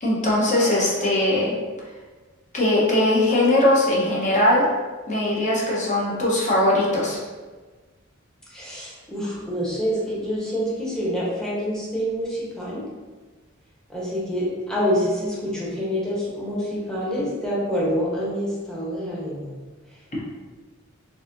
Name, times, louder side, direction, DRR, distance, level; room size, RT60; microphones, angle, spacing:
voice 1, 0.0-1.5 2.5-4.7 5.1-7.2, left 1 dB, 35° left, -5 dB, 0.9 m, -20 dB
voice 2, 8.5-12.8 13.9-19.5, equal, 5° left, -7 dB, 0.9 m, -26 dB
4.0 x 2.6 x 2.5 m, 1.3 s
head